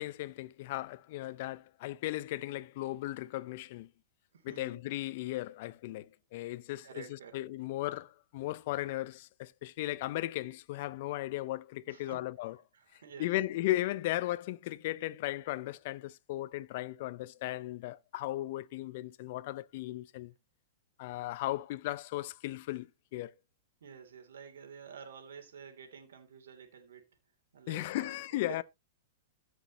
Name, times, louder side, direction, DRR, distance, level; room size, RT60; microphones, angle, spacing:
voice 1, 0.0-3.9 4.4-12.6 13.2-20.3 21.0-23.3 27.7-28.6, left 16 dB, 55° left, 0.7 m, -36 dB
voice 2, 4.3-4.8 6.8-7.4 11.9-12.3 12.7-13.4 17.0-17.1 23.8-27.1 27.5-28.2 28.5-28.6, right 7 dB, 85° right, 3.2 m, -50 dB
15.0 x 6.3 x 3.0 m
hypercardioid pair, 135°, 0 cm